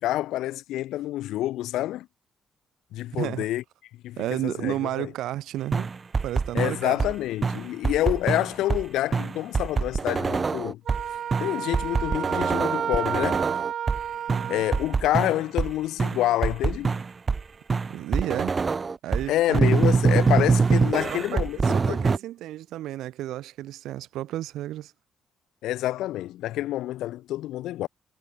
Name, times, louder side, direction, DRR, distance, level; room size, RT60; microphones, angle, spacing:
voice 1, 0.0-2.1 2.9-3.6 4.0-5.1 6.5-10.8 11.4-13.5 14.5-17.0 19.3-21.6 21.9-22.0 25.6-27.9, left 14 dB, 90° left, 1.8 m, -27 dB
voice 2, 3.2-3.5 4.2-5.9 6.2-7.0 14.3-14.6 17.9-18.6 19.0-19.6 21.1-24.9, right 14 dB, 85° right, 3.6 m, -32 dB
sound 1, 5.7-7.1 7.4-8.8 9.1-11.0 11.3-14.0 14.3-15.7 16.0-17.4 17.7-19.3 19.5-22.2, right 4 dB, 35° right, 1.3 m, -24 dB
Wind instrument woodwind instrument, 10.9-15.0, right 9 dB, 65° right, 1.2 m, -31 dB
cardioid pair, 90°, 0 cm